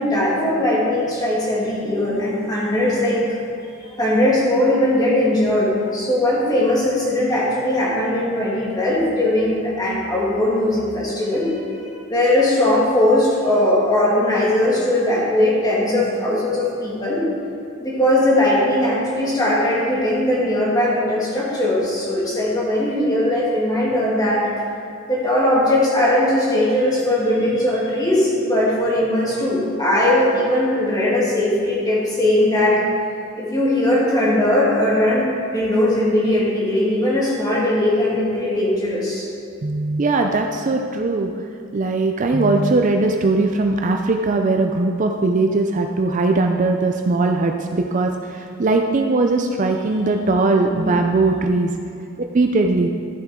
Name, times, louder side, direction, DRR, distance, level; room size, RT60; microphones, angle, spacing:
voice 1, 0.0-3.2 3.8-17.3 17.8-24.5 25.1-32.8 33.4-39.3 50.7-51.0, left 1 dB, 20° left, -6 dB, 2.2 m, -19 dB
voice 2, 39.6-41.3 41.7-51.7 52.2-52.9, right 3 dB, 35° right, 3 dB, 0.4 m, -19 dB
13.0 x 7.5 x 3.7 m, 2.4 s
head